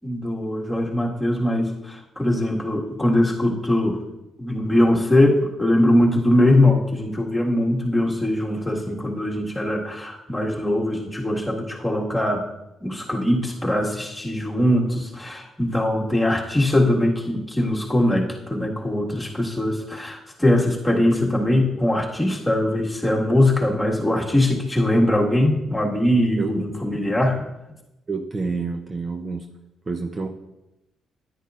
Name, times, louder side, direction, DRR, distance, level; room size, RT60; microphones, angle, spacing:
voice 1, 0.0-4.0 4.4-12.4 12.8-27.4, left 1 dB, 10° left, -2 dB, 1.8 m, -21 dB
voice 2, 28.1-29.5 29.9-30.3, right 4 dB, 30° right, 4 dB, 0.7 m, -28 dB
10.0 x 9.9 x 2.5 m, 0.95 s
cardioid pair, 90°, 0 cm